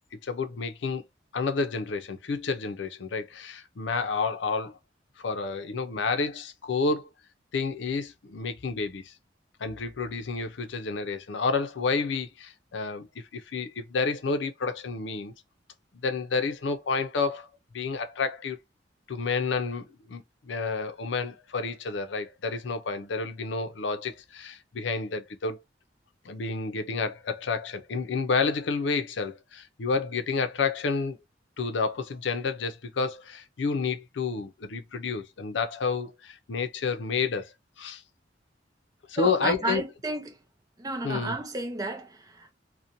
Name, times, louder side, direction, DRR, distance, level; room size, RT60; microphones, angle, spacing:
voice 1, 0.2-1.0 1.3-4.8 5.2-7.1 7.5-9.1 9.6-13.1 13.3-15.3 16.0-17.5 17.7-18.6 19.1-25.6 26.2-31.2 31.6-37.5 37.8-38.0 39.1-39.8 41.0-41.4, left 4 dB, 80° left, 0.5 m, -30 dB
voice 2, 39.2-40.4 40.8-42.5, right 2 dB, 20° right, 0.5 m, -32 dB
2.8 x 2.1 x 2.5 m
head